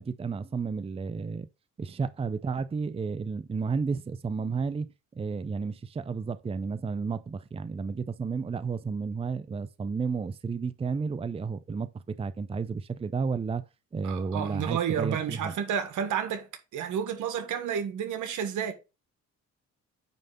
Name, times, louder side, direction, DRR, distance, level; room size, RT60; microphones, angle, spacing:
voice 1, 0.0-1.5 1.8-4.9 5.1-13.6 13.9-15.5, right 5 dB, 20° right, 0.5 m, -32 dB
voice 2, 14.0-18.7, right 8 dB, 80° right, 1.5 m, -31 dB
9.2 x 3.3 x 5.5 m
cardioid pair, 90°, 30 cm